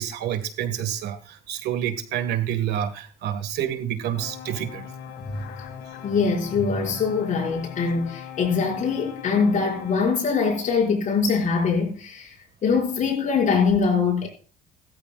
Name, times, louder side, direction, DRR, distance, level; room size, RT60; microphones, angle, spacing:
voice 1, 0.0-4.9, right 10 dB, 75° right, 1.8 m, -28 dB
sound 1, 4.2-10.0, left 8 dB, 75° left, 2.0 m, -40 dB
voice 2, 6.0-12.3 12.6-14.3, left 5 dB, 50° left, 5.7 m, -23 dB
16.5 x 13.5 x 2.4 m
cardioid pair, 110°, 17 cm